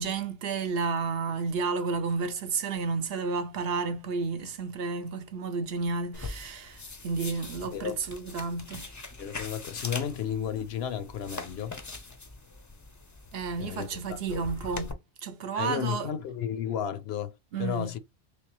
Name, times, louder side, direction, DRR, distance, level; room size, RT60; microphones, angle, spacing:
voice 1, 0.0-8.9 13.3-14.9 15.2-16.1 17.5-17.9, right 4 dB, 65° right, 0.9 m, -31 dB
sound 1, 6.1-14.9, left 3 dB, 25° left, 0.4 m, -42 dB
voice 2, 9.2-11.8 13.6-14.5 15.6-18.0, left 8 dB, 75° left, 0.8 m, -33 dB
3.3 x 3.3 x 2.9 m
omnidirectional pair, 1.1 m